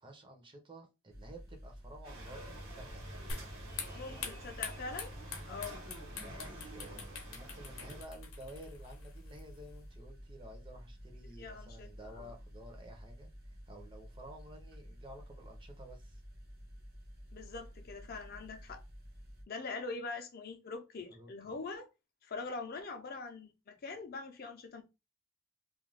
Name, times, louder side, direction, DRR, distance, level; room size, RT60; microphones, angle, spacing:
voice 1, 0.0-3.1 3.9-4.2 6.2-13.3 13.7-16.2 21.1-21.5, right 1 dB, 25° right, 0.6 m, -52 dB
sound 1, 1.1-19.4, equal, 50° right, 1.0 m, -51 dB
sound 2, 2.0-8.0, right 1 dB, 75° right, 1.1 m, -48 dB
sound 3, 3.3-9.9, left 5 dB, 90° left, 0.7 m, -46 dB
voice 2, 3.9-5.1 5.5-5.8 11.4-12.3 17.3-18.8 19.5-21.9 22.2-24.8, left 3 dB, 45° left, 0.5 m, -43 dB
2.4 x 2.2 x 3.2 m
head